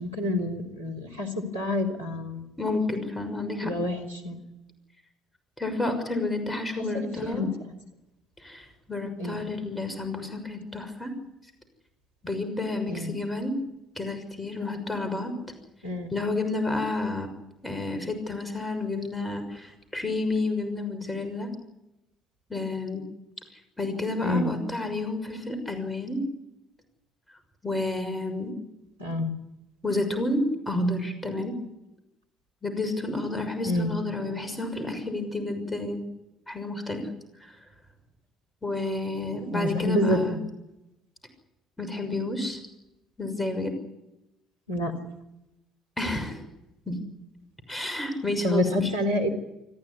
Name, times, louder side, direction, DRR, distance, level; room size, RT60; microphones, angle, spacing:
voice 1, 0.0-2.5 3.6-4.4 6.9-7.7 9.2-9.4 12.9-13.1 15.8-16.1 24.2-24.5 29.0-29.3 33.6-33.9 39.5-40.4 44.7-44.9 48.4-49.3, left 1 dB, 85° right, 0 dB, 3.6 m, -28 dB
voice 2, 2.6-3.7 5.6-7.5 8.4-11.2 12.2-13.6 14.0-15.3 16.1-17.3 17.6-21.5 22.5-23.0 23.8-26.2 27.6-28.5 29.8-31.6 32.6-36.1 36.5-37.1 37.4-37.6 38.6-40.4 41.8-42.6 43.2-43.7 46.0-46.4 46.9-47.0 47.7-48.9, left 2 dB, 10° left, 8 dB, 6.4 m, -30 dB
25.5 x 15.5 x 9.9 m, 0.90 s
figure-of-eight pair, 50°, 0 cm